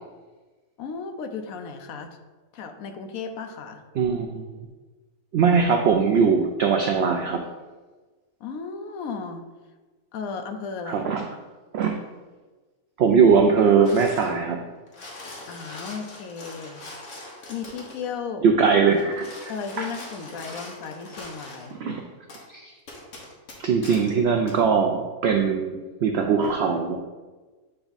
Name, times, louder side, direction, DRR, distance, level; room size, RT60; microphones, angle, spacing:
voice 1, 0.8-2.1 2.5-3.8 8.4-9.4 10.1-11.1 15.5-16.8 17.5-18.4 19.5-21.8, left 5 dB, 70° left, 6 dB, 1.0 m, -35 dB
voice 2, 3.9-4.6 5.3-7.4 10.9-11.2 11.7-11.9 13.0-14.6 18.4-19.5 19.8-19.9 20.5-20.6 21.8-22.0 22.5-22.7 23.6-27.0, right 5 dB, 75° right, 4 dB, 0.6 m, -21 dB
sound 1, 13.8-14.4 14.8-18.0 18.9-21.7 22.3-22.4 22.9-24.1 24.5-24.6, left 2 dB, 55° left, 1.4 m, -41 dB
8.0 x 3.4 x 4.0 m, 1.3 s
omnidirectional pair, 1.6 m